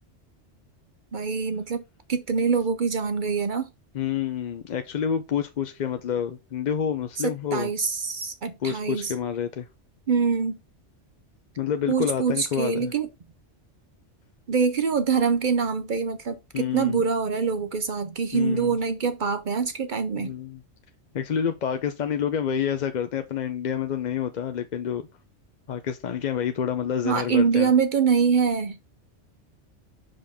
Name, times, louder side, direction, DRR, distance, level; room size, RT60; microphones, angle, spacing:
voice 1, 1.1-1.8 2.1-3.7 7.2-9.1 10.1-10.6 11.9-13.1 14.5-20.3 27.0-28.8, right 5 dB, 50° right, 0.7 m, -24 dB
voice 2, 3.9-7.7 8.6-9.7 11.6-12.9 16.5-17.0 18.3-18.8 20.2-20.6 21.1-25.1 25.7-27.7, left 8 dB, 50° left, 0.5 m, -28 dB
5.6 x 5.1 x 3.5 m
omnidirectional pair, 1.2 m